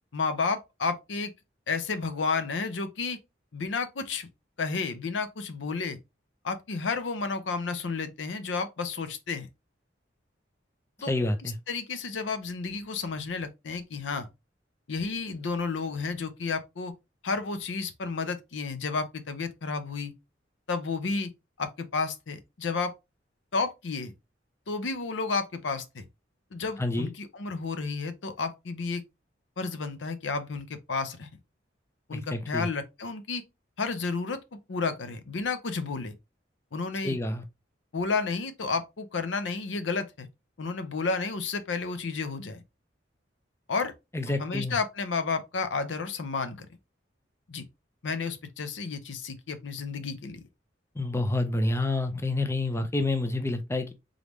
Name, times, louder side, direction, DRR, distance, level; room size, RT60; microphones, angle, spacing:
voice 1, 0.1-1.3 1.7-3.2 3.5-4.3 4.6-6.0 6.4-9.5 11.0-11.1 11.7-14.3 14.9-16.9 17.2-20.1 20.7-21.3 21.6-22.9 23.5-24.1 24.7-26.1 26.5-29.0 29.6-31.4 32.1-33.4 33.8-36.2 36.7-37.2 37.9-40.3 40.6-42.6 43.7-43.9 44.4-46.7 47.5-47.6 48.0-50.4, left 4 dB, 85° left, 0.6 m, -31 dB
voice 2, 11.1-11.6 26.8-27.1 32.1-32.7 37.0-37.4 44.1-44.8 51.0-53.9, left 2 dB, 15° left, 0.5 m, -28 dB
3.8 x 3.5 x 3.0 m
head